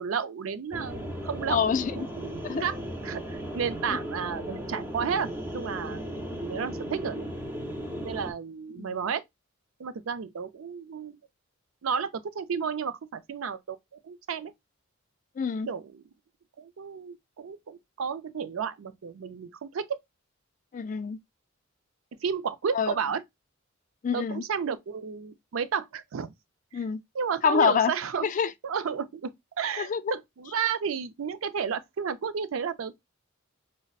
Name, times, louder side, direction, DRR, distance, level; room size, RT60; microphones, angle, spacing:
voice 1, 0.0-1.6 1.9-2.8 3.0-7.3 8.0-9.2 9.8-11.2 11.8-13.8 14.0-14.5 15.7-15.8 16.6-20.0 22.2-23.2 24.1-26.3 27.1-28.3 28.6-29.3 29.6-32.9, right 6 dB, 80° right, 0.4 m, -32 dB
sound 1, 0.7-8.3, equal, 10° right, 0.7 m, -36 dB
voice 2, 1.5-2.0 2.4-2.7 6.3-6.4 8.7-8.9 15.4-15.7 20.7-21.2 22.7-23.0 24.0-24.4 26.7-27.0 27.4-27.9 28.2-28.5 29.8-30.0, left 6 dB, 40° left, 0.3 m, -26 dB
5.2 x 2.1 x 2.3 m
head